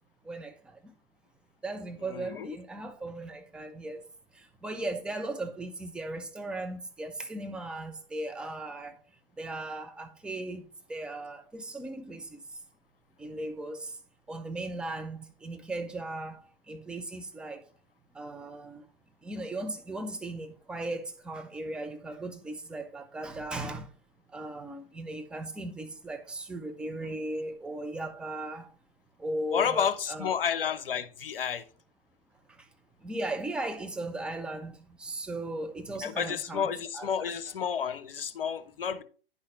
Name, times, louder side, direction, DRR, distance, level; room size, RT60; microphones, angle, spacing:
voice 1, 0.2-0.9 1.6-4.0 4.3-9.0 9.4-12.6 13.2-14.0 14.3-17.7 18.1-18.9 19.2-23.9 24.3-28.7 29.2-30.3 32.5-32.7 33.0-36.7 36.9-37.3, right 2 dB, 5° right, 0.4 m, -37 dB
voice 2, 2.0-2.6 29.5-31.6 36.0-39.0, left 7 dB, 70° left, 0.7 m, -31 dB
10.0 x 5.6 x 3.0 m
figure-of-eight pair, 100°, 29 cm